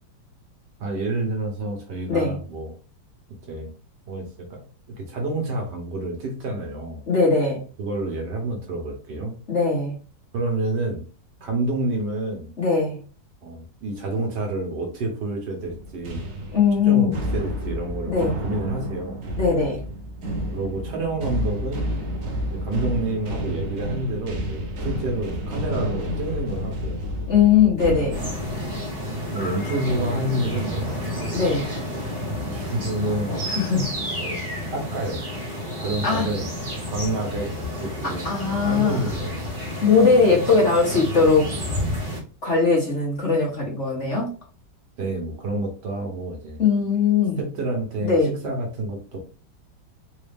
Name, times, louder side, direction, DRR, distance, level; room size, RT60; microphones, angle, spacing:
voice 1, 0.8-2.7 3.5-3.7 4.1-4.6 5.0-7.0 7.8-9.3 10.3-11.0 11.4-12.5 13.4-16.3 16.9-19.2 20.5-21.9 22.5-27.0 29.3-31.0 32.4-33.3 34.2-34.4 34.7-35.2 35.8-36.5 36.9-38.3 38.6-39.5 45.0-46.6 47.4-49.2, right 2 dB, 60° right, 2 dB, 1.5 m, -29 dB
voice 2, 7.1-7.6 9.5-9.9 12.6-13.0 16.5-17.2 18.1-18.4 19.4-19.8 27.3-28.2 31.3-31.7 33.5-33.8 36.0-36.3 38.2-39.0 39.8-41.5 42.4-44.3 46.6-47.4 48.0-48.3, left 5 dB, 40° left, -3 dB, 1.3 m, -20 dB
sound 1, 15.6-32.2 32.6-32.9 33.5-34.0, equal, 85° right, 0.5 m, -31 dB
sound 2, 28.1-42.2, equal, 30° right, 1.1 m, -30 dB
3.9 x 2.7 x 3.4 m, 0.37 s
omnidirectional pair, 2.2 m